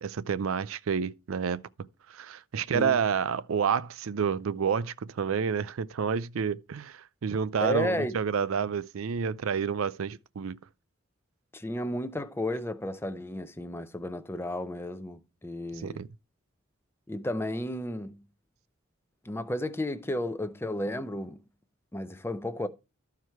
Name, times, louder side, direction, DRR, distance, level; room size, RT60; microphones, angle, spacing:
voice 1, 0.0-1.6 2.1-10.6 15.8-16.1, right 6 dB, 80° right, 0.5 m, -29 dB
voice 2, 7.6-8.2 11.5-16.0 17.1-18.2 19.2-21.4 21.9-22.7, left 1 dB, 10° left, 0.6 m, -33 dB
13.0 x 4.7 x 4.5 m
head